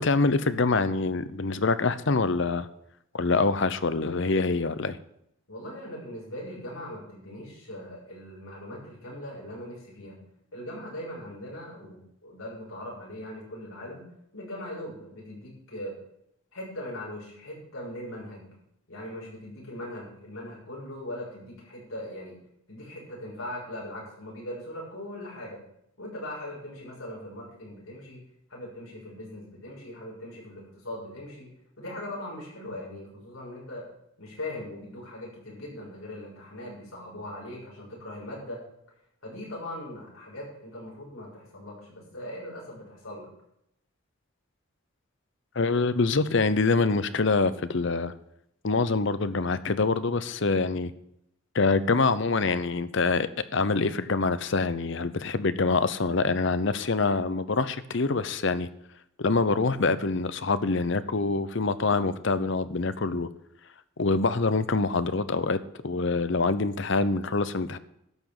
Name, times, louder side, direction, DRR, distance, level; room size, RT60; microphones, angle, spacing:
voice 1, 0.0-2.7 3.1-5.0 45.6-48.1 48.6-50.9 51.5-58.7 59.2-63.3 64.0-65.6 65.8-67.8, left 3 dB, 60° left, 14 dB, 0.7 m, -25 dB
voice 2, 5.5-10.2 10.5-14.0 14.3-16.0 16.5-18.5 18.9-22.4 22.7-25.6 26.0-28.2 28.5-31.5 31.8-33.8 34.2-38.6 39.2-43.3, left 1 dB, 80° left, -4 dB, 6.5 m, -40 dB
12.5 x 6.1 x 8.8 m, 0.76 s
head